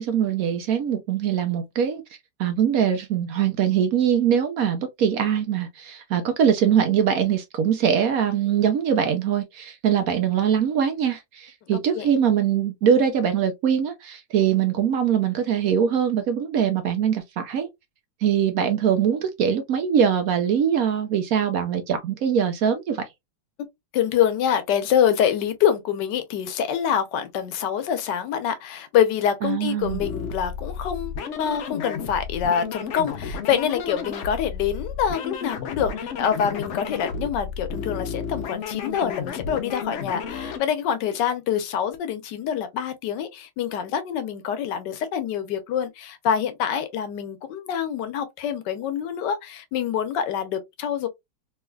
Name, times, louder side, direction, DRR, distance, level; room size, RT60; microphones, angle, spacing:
voice 1, 0.0-2.0 2.4-17.7 18.2-23.1 29.4-30.0, right 8 dB, 70° right, 0.9 m, -22 dB
voice 2, 11.7-12.1 23.9-31.1 31.4-51.1, left 8 dB, 80° left, 1.3 m, -25 dB
sound 1, 29.8-40.6, left 6 dB, 60° left, 0.8 m, -32 dB
3.3 x 3.2 x 2.2 m
omnidirectional pair, 1.9 m